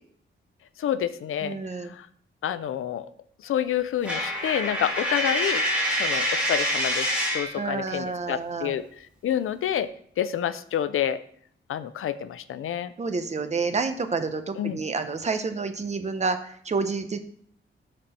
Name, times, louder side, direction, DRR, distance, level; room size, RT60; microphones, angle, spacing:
voice 1, 0.8-1.6 1.8-2.1 2.4-3.1 3.4-5.6 6.0-9.9 10.2-11.2 11.7-12.9 14.6-14.8, left 10 dB, 90° left, 14 dB, 0.6 m, -28 dB
voice 2, 1.4-1.9 7.6-8.7 13.0-17.2, right 4 dB, 35° right, 9 dB, 0.8 m, -29 dB
Coin (dropping), 4.0-7.6, equal, 5° right, 2.6 m, -26 dB
13.0 x 4.3 x 4.3 m, 0.62 s
wide cardioid pair, 150°, 21 cm